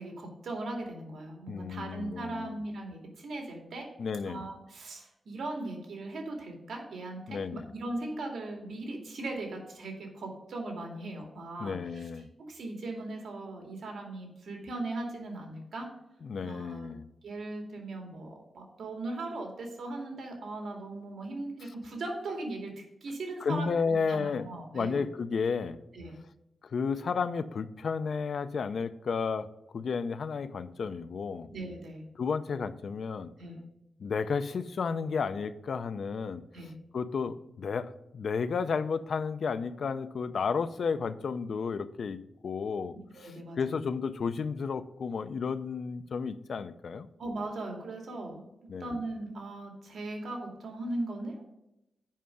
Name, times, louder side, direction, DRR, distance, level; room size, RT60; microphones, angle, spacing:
voice 1, 0.0-3.9 4.3-12.1 12.5-15.9 16.4-16.9 17.2-25.0 25.9-26.1 31.5-32.0 33.4-33.6 36.5-36.7 43.1-43.8 47.2-48.4 48.8-51.4, right 2 dB, 75° right, 1 dB, 2.3 m, -39 dB
voice 2, 1.5-2.6 4.0-4.5 7.3-7.7 11.6-12.3 16.2-17.1 23.4-24.5 24.7-25.8 26.6-29.5 29.7-31.5 32.2-33.3 34.0-36.4 36.9-42.9 43.2-43.3 43.6-47.1 48.7-49.0, left 5 dB, 65° left, 12 dB, 0.5 m, -32 dB
7.4 x 5.6 x 6.3 m, 0.88 s
wide cardioid pair, 120°, 0 cm